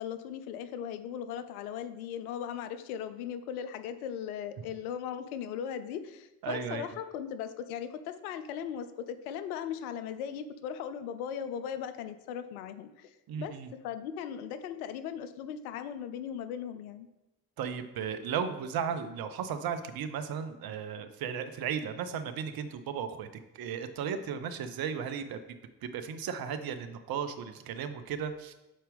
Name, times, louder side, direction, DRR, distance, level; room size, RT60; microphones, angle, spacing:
voice 1, 0.0-13.1 13.4-13.6 13.8-17.1, left 8 dB, 80° left, 11 dB, 0.5 m, -38 dB
voice 2, 6.4-6.9 13.3-13.7 17.6-23.3 23.5-25.4 25.8-28.5, right 7 dB, 55° right, 9 dB, 0.7 m, -35 dB
7.4 x 4.3 x 3.4 m, 0.97 s
hypercardioid pair, 45°, 42 cm